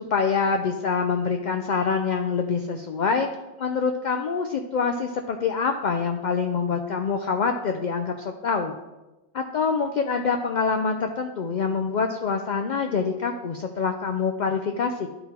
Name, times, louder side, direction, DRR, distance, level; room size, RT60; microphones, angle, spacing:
voice 1, 0.1-3.3 3.6-8.7 9.3-15.1, left 5 dB, 55° left, 4 dB, 0.5 m, -25 dB
11.5 x 3.9 x 4.3 m, 1.1 s
omnidirectional pair, 1.2 m